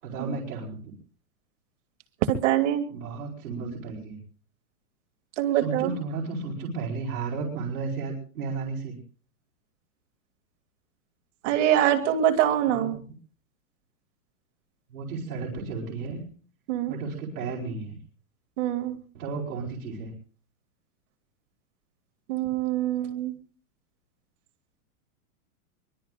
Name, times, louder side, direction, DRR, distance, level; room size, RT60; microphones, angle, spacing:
voice 1, 0.0-0.9 2.9-4.2 5.5-9.0 12.7-13.0 14.9-16.3 16.9-17.9 19.1-20.1, right 4 dB, 85° right, -2 dB, 4.9 m, -33 dB
voice 2, 2.2-2.8 5.4-6.0 11.4-13.0 16.7-16.9 18.6-19.0 22.3-23.3, right 11 dB, 55° right, 6 dB, 2.7 m, -24 dB
24.0 x 22.0 x 2.5 m, 0.42 s
supercardioid pair, 160°, 44 cm